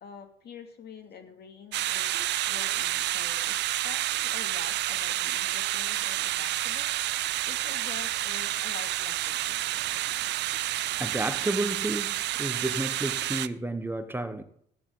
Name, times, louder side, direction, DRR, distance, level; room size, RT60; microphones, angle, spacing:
voice 1, 0.0-2.2 2.5-3.6 3.8-9.6, left 7 dB, 55° left, 2.7 m, -46 dB
sound 1, 1.7-13.5, right 15 dB, 60° right, 0.6 m, -29 dB
voice 2, 11.0-14.4, right 2 dB, 10° right, 1.2 m, -31 dB
14.0 x 10.5 x 4.0 m
hypercardioid pair, 60°, 20 cm